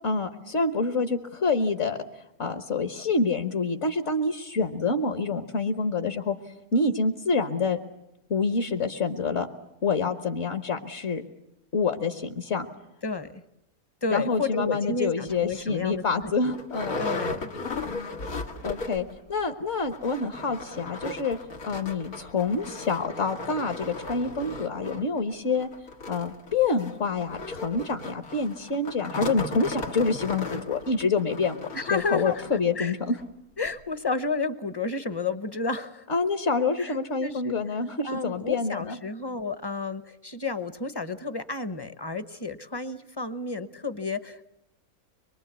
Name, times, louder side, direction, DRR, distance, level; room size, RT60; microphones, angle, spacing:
voice 1, 0.0-2.0 2.4-6.3 6.7-7.8 8.3-9.5 9.8-11.2 11.7-12.7 14.1-17.0 18.6-21.4 21.6-25.7 26.1-31.6 31.9-33.2 36.1-39.0, left 4 dB, 55° left, 7 dB, 1.5 m, -27 dB
voice 2, 13.0-13.4 14.0-16.6 17.0-17.5 31.7-32.4 32.8-32.9 33.6-36.1 36.8-37.6 38.0-44.4, left 3 dB, 20° left, 12 dB, 0.8 m, -31 dB
sound 1, 15.3-15.4 15.9-16.0 16.2-19.2 19.4-19.5 19.8-32.6 33.2-33.3 33.7-33.8, left 2 dB, 90° left, 2.4 m, -36 dB
24.0 x 23.5 x 8.2 m, 0.83 s
omnidirectional pair, 1.5 m